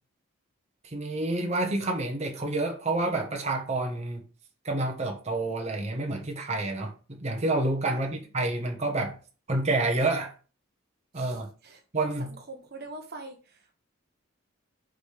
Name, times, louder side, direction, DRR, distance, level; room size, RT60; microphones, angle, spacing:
voice 1, 0.8-4.2 4.6-9.1 9.5-10.3 11.1-11.5 11.9-12.3, right 2 dB, 30° right, 1.2 m, -28 dB
voice 2, 11.1-11.8 12.2-13.7, right 2 dB, 50° right, 1.1 m, -44 dB
5.2 x 5.0 x 5.0 m
head